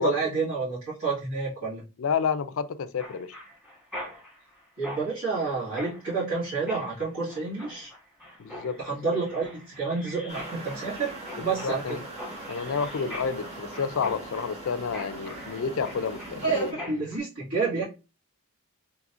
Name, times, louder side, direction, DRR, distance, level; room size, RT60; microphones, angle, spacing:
voice 1, 0.0-1.8 4.8-7.9 8.8-12.0 16.3-17.8, right 4 dB, 70° right, 2.1 m, -29 dB
voice 2, 2.0-3.4 8.4-8.8 11.4-12.0 12.5-16.9, left 6 dB, 65° left, 0.4 m, -30 dB
Mechanisms, 3.0-17.2, left 1 dB, 5° right, 1.4 m, -43 dB
sound 1, 10.3-16.7, right 2 dB, 30° right, 1.5 m, -41 dB
4.8 x 3.1 x 2.5 m
head